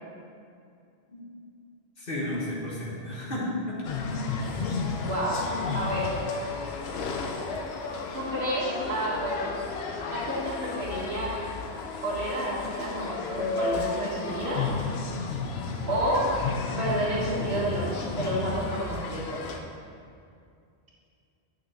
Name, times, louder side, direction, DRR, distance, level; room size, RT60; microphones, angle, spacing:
voice 1, 2.0-3.8 4.1-4.3, left 1 dB, 60° left, -6 dB, 1.5 m, -32 dB
sound 1, 3.8-19.6, left 4 dB, 85° left, 0.9 m, -32 dB
voice 2, 5.0-5.4 5.7-6.2 8.1-9.5 10.0-11.3 12.0-14.6 15.9-16.3 16.8-19.4, right 1 dB, 90° right, -6 dB, 1.6 m, -30 dB
8.9 x 6.1 x 2.9 m, 2.4 s
omnidirectional pair, 1.0 m